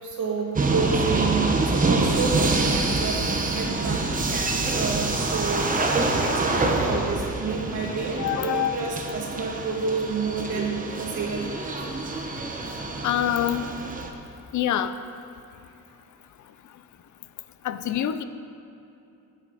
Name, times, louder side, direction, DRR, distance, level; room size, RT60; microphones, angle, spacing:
voice 1, 0.0-5.7 6.2-11.8, right 4 dB, 60° right, -2 dB, 2.6 m, -30 dB
sound 1, 0.6-14.1, right 3 dB, 25° right, 1.1 m, -26 dB
voice 2, 8.2-8.8 13.0-13.6 14.5-14.9 17.6-18.2, left 11 dB, 55° left, 11 dB, 0.6 m, -25 dB
15.0 x 9.3 x 4.2 m, 2.8 s
cardioid pair, 125°, 35 cm